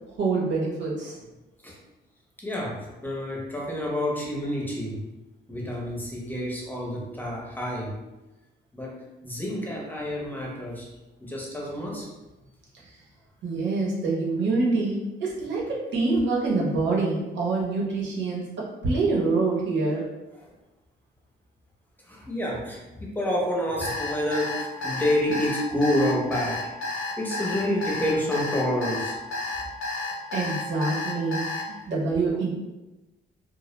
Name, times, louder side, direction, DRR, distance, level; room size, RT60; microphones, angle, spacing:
voice 1, 0.2-1.2 13.4-20.0 30.3-32.5, right 3 dB, 65° right, -4 dB, 0.8 m, -26 dB
voice 2, 2.4-5.0 5.5-8.0 8.7-10.9 11.2-12.1 20.4-20.5 22.0-29.3, left 1 dB, 10° left, -4 dB, 0.7 m, -29 dB
Alarm, 23.8-31.6, left 3 dB, 85° left, 0.5 m, -31 dB
2.1 x 2.1 x 3.0 m, 1.0 s
cardioid pair, 90°, 20 cm